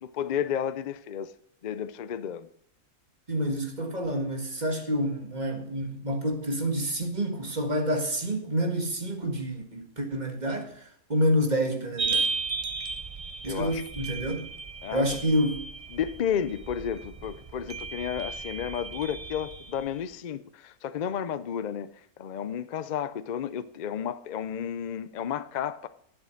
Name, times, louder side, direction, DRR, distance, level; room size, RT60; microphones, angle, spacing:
voice 1, 0.0-1.3 1.6-2.5 13.4-13.8 14.8-15.1 15.9-21.9 22.2-25.9, left 8 dB, 70° left, 0.4 m, -32 dB
voice 2, 3.3-10.8 11.1-12.3 13.4-14.5 14.9-15.6, equal, 30° right, 1.7 m, -28 dB
sound 1, 12.0-20.0, right 4 dB, 55° right, 0.4 m, -35 dB
11.0 x 7.6 x 6.4 m
omnidirectional pair, 1.5 m